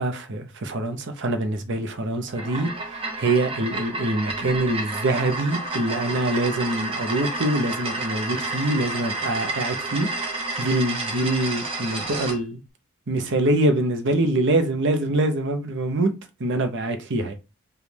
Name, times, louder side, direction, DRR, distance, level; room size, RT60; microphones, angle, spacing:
voice 1, 0.0-12.6 13.1-16.1 16.4-17.3, right 1 dB, 60° right, 0.7 m, -24 dB
sound 1, 2.3-12.4, right 2 dB, 25° right, 0.9 m, -30 dB
5.1 x 2.3 x 3.3 m
head